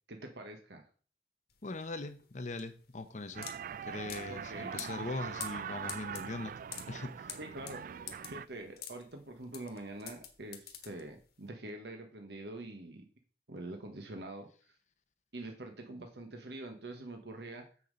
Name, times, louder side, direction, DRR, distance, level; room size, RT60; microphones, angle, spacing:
voice 1, 0.1-0.8 4.3-4.7 7.4-7.8 8.3-13.0 13.5-14.5 15.3-17.7, right 2 dB, 70° right, 4 dB, 1.2 m, -45 dB
sound 1, 1.5-11.4, left 9 dB, 60° left, 1.4 m, -47 dB
voice 2, 1.6-3.5 3.8-6.5 6.9-7.4, left 2 dB, 40° left, 9 dB, 0.7 m, -41 dB
sound 2, 3.3-8.5, right 7 dB, 50° right, 0.3 m, -42 dB
7.4 x 6.7 x 5.2 m, 0.41 s
head